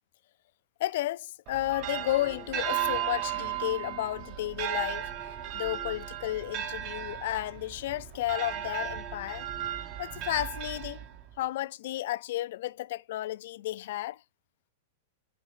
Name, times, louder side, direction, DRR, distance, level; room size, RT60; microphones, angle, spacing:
voice 1, 0.8-5.1 5.5-9.5 10.0-11.0 11.4-14.2, left 15 dB, 55° left, 0.4 m, -32 dB
sound 1, 1.5-11.4, right 11 dB, 35° right, 1.1 m, -35 dB
6.7 x 4.2 x 5.6 m
supercardioid pair, 165°, 0 cm